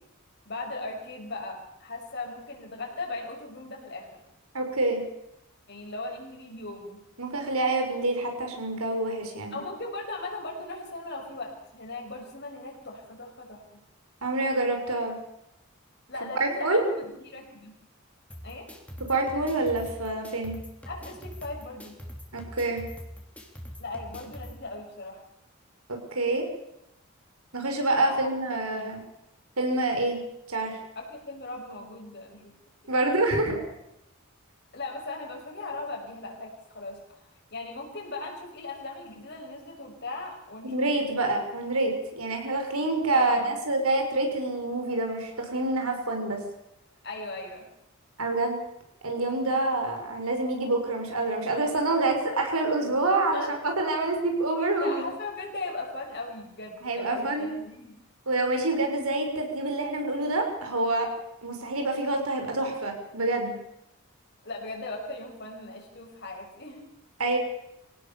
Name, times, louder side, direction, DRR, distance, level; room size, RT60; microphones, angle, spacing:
voice 1, 0.4-4.2 5.7-7.0 9.5-13.6 16.1-17.7 18.4-18.7 20.8-22.0 23.8-25.2 28.0-28.1 28.8-29.0 30.9-32.5 32.8-32.9 34.7-37.2 37.5-40.9 43.1-43.6 47.0-47.7 53.3-53.6 54.8-58.0 64.4-66.8, left 2 dB, 50° left, 1 dB, 6.5 m, -38 dB
voice 2, 4.5-5.0 7.2-9.6 14.2-15.2 16.4-16.8 19.1-20.6 22.3-22.8 25.9-26.4 27.5-29.0 29.6-30.2 30.5-30.8 32.9-33.6 40.6-46.4 48.2-48.6 49.0-55.0 56.8-57.5 58.3-61.1 61.4-63.6 67.2-67.4, right 2 dB, 80° right, 3 dB, 6.0 m, -27 dB
sound 1, 18.3-24.5, equal, 5° left, 3.6 m, -43 dB
25.0 x 17.5 x 7.0 m, 0.84 s
head